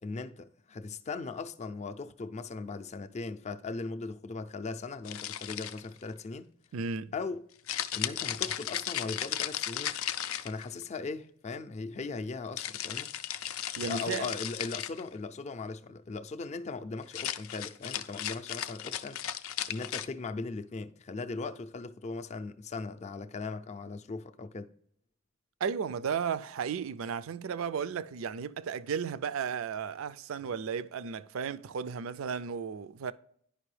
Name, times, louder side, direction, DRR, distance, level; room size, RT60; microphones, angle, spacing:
voice 1, 0.0-6.5 7.1-7.5 7.9-10.0 10.4-13.1 13.9-19.2 19.7-24.7, left 3 dB, 35° left, 0.4 m, -38 dB
sound 1, 5.0-6.0 7.7-10.9 12.6-15.0 17.0-20.1, left 10 dB, 90° left, 0.5 m, -35 dB
voice 2, 6.7-7.1 13.8-14.3 25.6-33.1, right 6 dB, 75° right, 0.4 m, -34 dB
10.0 x 5.3 x 3.2 m
head